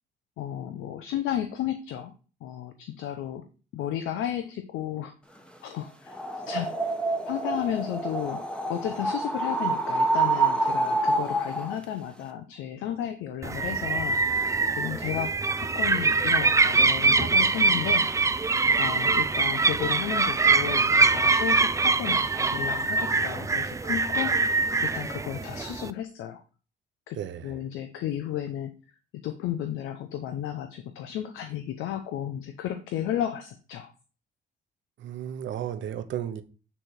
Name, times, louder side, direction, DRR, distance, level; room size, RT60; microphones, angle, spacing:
voice 1, 0.4-2.1 2.4-3.5 3.7-5.1 5.6-6.1 6.5-6.9 7.3-14.2 14.8-18.1 18.8-26.4 27.1-27.2 27.4-28.7 29.1-33.9, left 11 dB, 90° left, 0.7 m, -33 dB
sound 1, 6.1-11.8, right 2 dB, 5° left, 1.0 m, -27 dB
sound 2, 13.4-25.9, right 3 dB, 15° right, 0.4 m, -23 dB
voice 2, 27.2-27.5 35.0-36.4, right 10 dB, 70° right, 0.8 m, -34 dB
8.5 x 3.4 x 4.4 m
cardioid pair, 90°, 20 cm